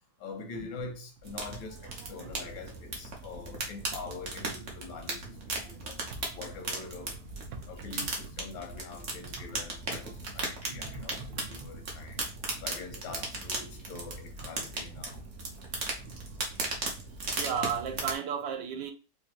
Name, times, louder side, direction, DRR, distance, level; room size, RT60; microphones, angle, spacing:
voice 1, 0.2-6.0 6.3-7.2 7.7-12.2 12.6-15.2, left 4 dB, 85° left, 1.6 m, -44 dB
sound 1, 1.2-18.2, right 2 dB, 45° right, 1.0 m, -37 dB
voice 2, 5.3-6.2 7.5-7.6 10.7-11.5 12.4-12.5 17.3-18.9, right 7 dB, 80° right, 1.4 m, -36 dB
4.9 x 2.3 x 3.0 m
omnidirectional pair, 2.0 m